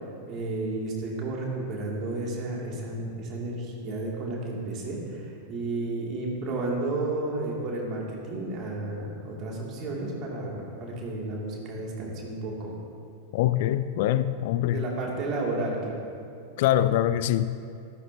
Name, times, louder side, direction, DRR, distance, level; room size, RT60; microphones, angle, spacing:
voice 1, 0.3-12.7 14.7-16.0, right 2 dB, 35° right, -3 dB, 2.7 m, -32 dB
voice 2, 13.3-14.9 16.6-17.6, left 12 dB, 50° left, 13 dB, 0.4 m, -24 dB
14.5 x 13.0 x 2.9 m, 2.4 s
figure-of-eight pair, 90°, 0 cm